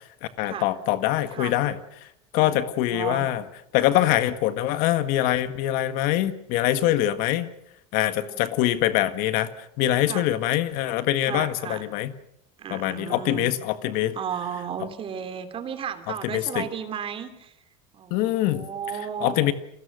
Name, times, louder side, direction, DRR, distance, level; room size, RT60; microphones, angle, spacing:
voice 1, 0.4-1.8 2.3-3.4 3.7-7.5 7.9-9.5 9.8-12.1 12.7-14.1 16.3-16.7 18.1-18.7 19.2-19.5, left 13 dB, 65° left, 11 dB, 1.7 m, -24 dB
voice 2, 2.4-3.3 6.7-7.2 8.2-8.4 10.1-10.3 11.2-11.9 12.6-13.5 14.1-17.5 17.9-19.5, right 8 dB, 35° right, 9 dB, 3.0 m, -34 dB
29.5 x 22.0 x 6.5 m, 0.77 s
supercardioid pair, 120°, 16 cm